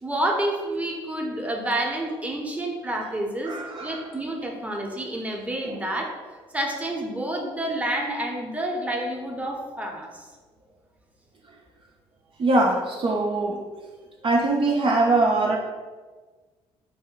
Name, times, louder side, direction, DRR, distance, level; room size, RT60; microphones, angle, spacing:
voice 1, 0.0-6.1 6.5-10.3, right 1 dB, 10° right, 0 dB, 0.8 m, -29 dB
voice 2, 3.5-4.0 5.6-5.8 12.4-13.6 14.2-15.6, right 2 dB, 40° right, -1 dB, 0.5 m, -22 dB
3.4 x 2.1 x 3.8 m, 1.4 s
hypercardioid pair, 50°, 13 cm